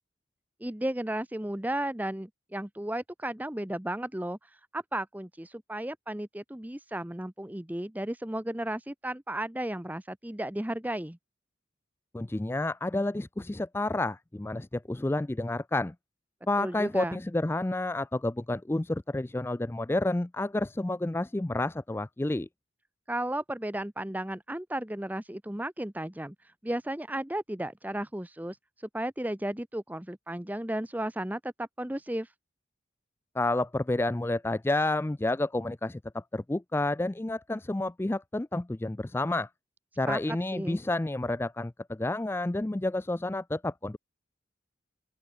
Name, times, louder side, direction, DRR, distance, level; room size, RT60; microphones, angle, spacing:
voice 1, 0.6-4.4 4.7-11.2 16.6-17.2 23.1-26.3 26.6-28.6 28.9-32.3 40.1-40.8, right 1 dB, 10° right, 0.7 m, -34 dB
voice 2, 12.1-15.9 16.5-22.5 33.4-39.5 40.0-44.0, left 2 dB, 10° left, 0.3 m, -30 dB
open air
head